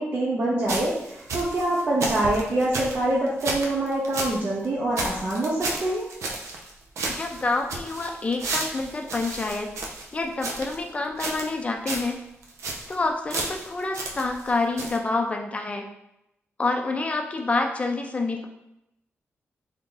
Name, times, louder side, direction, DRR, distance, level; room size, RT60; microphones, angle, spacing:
voice 1, 0.0-6.0, right 1 dB, 45° right, -6 dB, 0.7 m, -25 dB
sound 1, 0.7-4.4 4.6-4.7 5.0-6.7 7.0-10.8 11.2-11.6 11.9-12.1 12.4-12.9 13.3-14.5 14.8-15.0, right 2 dB, 85° right, 0.6 m, -32 dB
voice 2, 7.1-9.7 10.1-12.2 12.9-15.8 16.6-18.4, left 3 dB, 25° left, 3 dB, 0.5 m, -27 dB
3.5 x 2.6 x 3.8 m, 0.84 s
wide cardioid pair, 135°, 5 cm